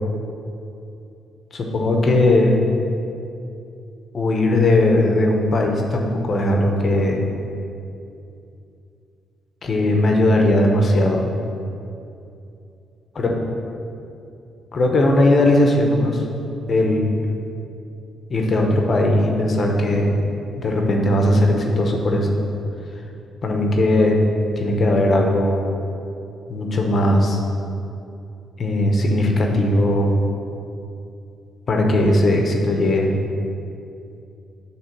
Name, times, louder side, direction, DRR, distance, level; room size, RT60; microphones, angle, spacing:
voice 1, 1.5-2.6 4.1-7.3 9.6-11.3 13.2-13.4 14.7-16.2 16.7-17.1 18.3-20.2 20.6-22.4 23.4-24.2 24.6-25.6 26.5-27.4 28.6-30.2 31.7-33.1, left 1 dB, 45° left, 1 dB, 1.0 m, -18 dB
7.8 x 3.3 x 6.1 m, 2.7 s
cardioid pair, 90°, 0 cm